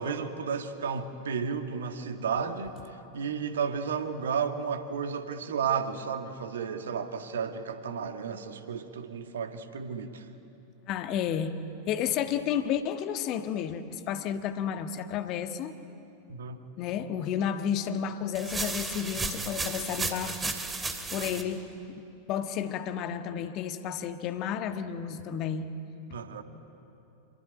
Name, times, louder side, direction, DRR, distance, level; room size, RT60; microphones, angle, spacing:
voice 1, 0.0-10.3 16.3-16.7 21.2-21.4 26.1-26.4, right 6 dB, 65° right, 7 dB, 1.7 m, -33 dB
voice 2, 10.9-11.5 11.9-15.7 16.8-20.6 21.1-21.6 22.3-25.7, left 8 dB, 40° left, 9 dB, 1.5 m, -31 dB
sound 1, 18.4-21.4, right 3 dB, 15° right, 2.5 m, -33 dB
26.5 x 23.0 x 9.2 m, 2.9 s
figure-of-eight pair, 90°, 0 cm